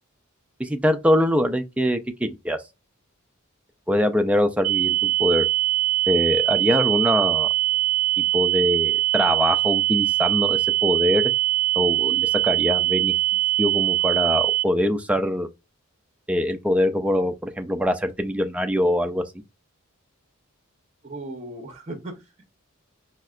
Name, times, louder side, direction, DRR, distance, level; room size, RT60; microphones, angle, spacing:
voice 1, 0.6-2.6 3.9-5.4 6.1-7.5 8.3-11.2 11.8-13.1 13.6-15.5 16.3-19.2, equal, 5° right, 0.3 m, -23 dB
sound 1, 4.6-14.6, right 17 dB, 90° right, 0.4 m, -22 dB
voice 2, 21.0-22.5, right 2 dB, 30° right, 0.7 m, -37 dB
4.5 x 2.1 x 2.3 m
head